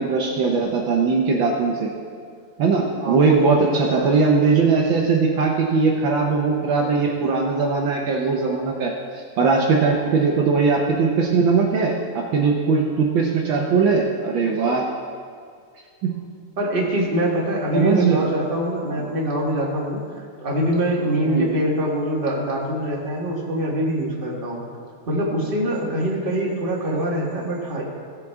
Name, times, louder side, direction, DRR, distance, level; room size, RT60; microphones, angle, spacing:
voice 1, 0.0-1.9 2.6-8.9 9.4-14.8 16.0-16.1 17.7-18.2 21.2-21.5, right 4 dB, 85° right, -1 dB, 1.0 m, -20 dB
voice 2, 3.0-4.2 16.6-24.6 25.1-27.8, right 1 dB, 25° right, -3 dB, 1.3 m, -24 dB
17.5 x 7.9 x 3.6 m, 2.1 s
omnidirectional pair, 3.4 m